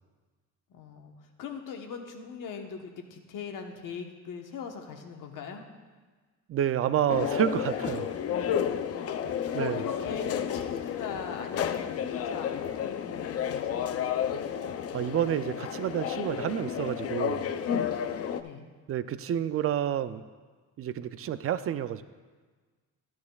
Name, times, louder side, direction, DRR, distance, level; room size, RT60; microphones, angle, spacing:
voice 1, 0.7-5.6 8.9-14.5 18.4-18.7, left 6 dB, 75° left, 3 dB, 1.2 m, -41 dB
voice 2, 6.5-8.2 9.5-9.8 14.9-17.5 18.9-20.2 20.8-22.0, right 10 dB, 45° right, 13 dB, 0.4 m, -29 dB
sound 1, 7.1-18.4, left 8 dB, 50° left, 0.5 m, -31 dB
13.0 x 10.5 x 2.3 m, 1.4 s
cardioid pair, 130°, 32 cm